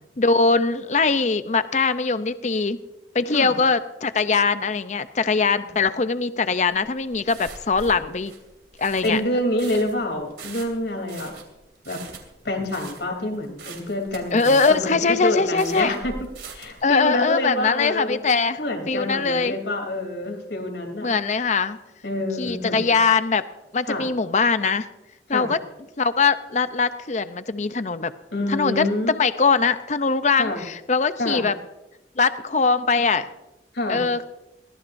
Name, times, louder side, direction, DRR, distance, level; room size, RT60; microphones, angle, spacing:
voice 1, 0.2-2.8 3.1-8.3 8.8-9.2 14.3-15.9 16.8-18.6 18.9-19.6 21.0-21.8 22.4-23.4 23.7-24.9 25.3-25.6 26.0-28.1 28.5-31.5 32.2-33.2 33.9-34.4, left 4 dB, 40° left, 12 dB, 0.6 m, -21 dB
sound 1, 6.7-16.8, right 4 dB, 70° right, 2.8 m, -42 dB
voice 2, 9.0-11.3 11.8-12.0 12.4-16.3 16.5-18.2 18.6-21.1 22.0-22.9 23.8-24.1 25.3-25.5 28.3-29.1 30.4-30.6 31.2-31.4 33.7-34.0, left 1 dB, 85° left, 3 dB, 3.3 m, -27 dB
22.5 x 18.0 x 2.6 m, 0.97 s
head